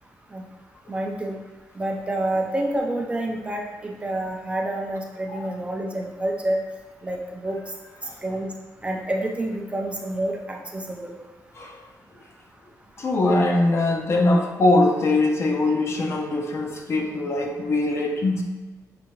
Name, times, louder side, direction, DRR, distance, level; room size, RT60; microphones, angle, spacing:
voice 1, 0.9-1.4 1.8-6.6 7.0-7.6 8.2-8.5 8.8-11.1, right 1 dB, 20° right, 0 dB, 0.4 m, -28 dB
voice 2, 13.0-18.4, left 2 dB, 45° left, 1 dB, 0.5 m, -22 dB
5.8 x 2.7 x 3.0 m, 1.2 s
wide cardioid pair, 155°, 7 cm